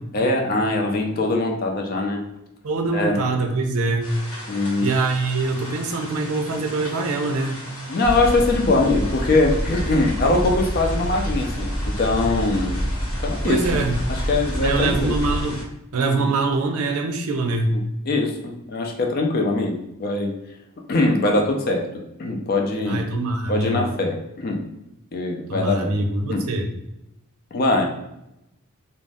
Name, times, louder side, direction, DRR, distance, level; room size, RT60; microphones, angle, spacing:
voice 1, 0.1-2.2 2.9-3.2 4.5-4.9 7.9-12.8 13.2-13.8 14.3-15.2 18.1-20.3 20.9-21.9 22.2-23.0 23.5-24.6 25.1-25.9 26.3-26.4 27.5-27.8, left 2 dB, 45° left, 2 dB, 0.4 m, -22 dB
voice 2, 2.6-4.1 4.8-7.6 13.4-14.0 14.6-15.6 15.9-17.8 22.9-23.9 25.5-26.7, right 3 dB, 85° right, 4 dB, 0.5 m, -24 dB
sound 1, 4.0-15.6, left 1 dB, 90° left, 0.9 m, -38 dB
sound 2, 8.0-15.4, equal, 10° left, 0.7 m, -27 dB
2.5 x 2.0 x 3.3 m, 0.87 s
head